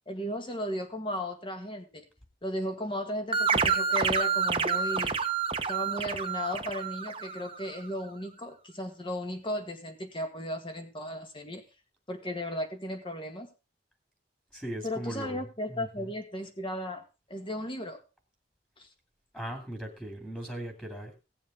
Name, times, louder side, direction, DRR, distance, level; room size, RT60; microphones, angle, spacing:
voice 1, 0.1-2.1 2.4-5.2 5.7-11.6 12.1-13.5 14.8-18.0 18.8-18.9, left 1 dB, 30° left, 5 dB, 1.8 m, -35 dB
sound 1, 3.3-7.6, right 5 dB, 30° right, 1.0 m, -28 dB
voice 2, 14.5-16.1 19.3-21.2, right 1 dB, 5° left, 4 dB, 2.6 m, -39 dB
17.5 x 7.3 x 3.7 m, 0.29 s
head